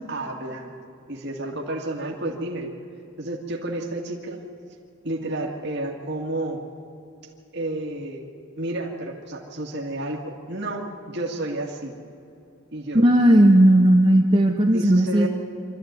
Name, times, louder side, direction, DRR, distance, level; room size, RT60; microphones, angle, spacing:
voice 1, 0.1-0.8 1.1-2.7 3.2-4.4 5.0-6.6 7.5-8.3 8.6-11.9 12.7-13.1 14.7-15.3, right 1 dB, 55° right, 0 dB, 2.1 m, -31 dB
voice 2, 12.9-15.3, right 1 dB, 30° right, -1 dB, 1.2 m, -16 dB
25.0 x 13.5 x 9.3 m, 2.7 s
head